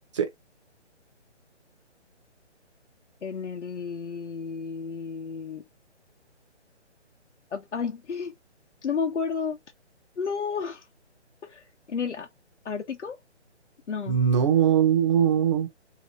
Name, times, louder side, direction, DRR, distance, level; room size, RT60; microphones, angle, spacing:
voice 1, 3.2-5.6 7.5-8.3 8.8-9.6 10.2-10.9 11.4-12.3 12.6-13.2 13.9-14.2, left 6 dB, 75° left, 0.9 m, -32 dB
voice 2, 14.1-15.7, right 8 dB, 25° right, 0.7 m, -21 dB
2.9 x 2.9 x 3.0 m
hypercardioid pair, 160°, 35 cm